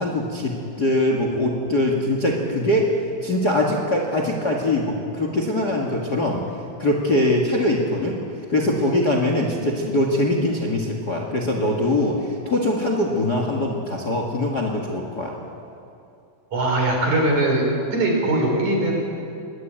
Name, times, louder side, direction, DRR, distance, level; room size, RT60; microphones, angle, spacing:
voice 1, 0.0-2.9 3.2-6.4 6.8-8.2 8.5-15.3, left 1 dB, 35° left, 1 dB, 2.0 m, -22 dB
voice 2, 16.5-17.6 17.9-19.0, right 2 dB, 55° right, 0 dB, 6.2 m, -20 dB
22.5 x 21.0 x 8.9 m, 2.5 s
omnidirectional pair, 4.1 m